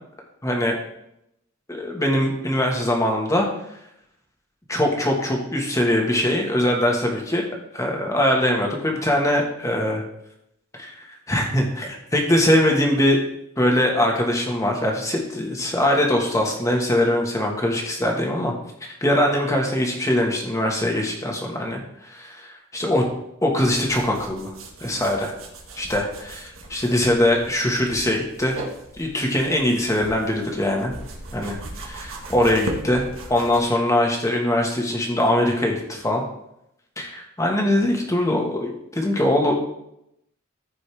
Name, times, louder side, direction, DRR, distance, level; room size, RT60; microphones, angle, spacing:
voice 1, 0.4-0.8 1.7-3.5 4.7-7.4 7.7-10.0 10.7-13.2 13.6-18.5 18.8-23.0 23.4-24.5 24.8-25.3 25.8-28.6 29.0-30.9 31.3-31.6 31.8-33.0 33.3-36.2 37.0-39.5, left 1 dB, 15° left, 0 dB, 1.6 m, -22 dB
sound 1, 23.6-33.6, right 1 dB, 75° right, 1.6 m, -38 dB
14.5 x 5.2 x 3.5 m, 0.80 s
head